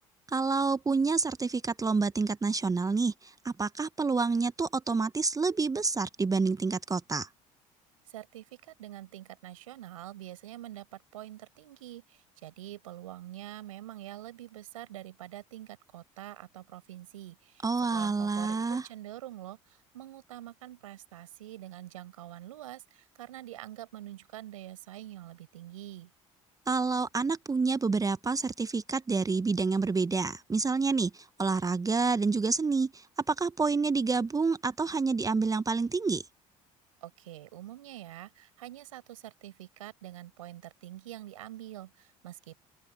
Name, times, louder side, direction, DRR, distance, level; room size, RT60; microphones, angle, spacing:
voice 1, 0.3-7.3 17.6-18.9 26.7-36.2, right 4 dB, 20° right, 1.1 m, -28 dB
voice 2, 8.1-17.7 17.9-26.1 37.0-42.6, right 14 dB, 75° right, 5.4 m, -45 dB
figure-of-eight pair, 60°, 17 cm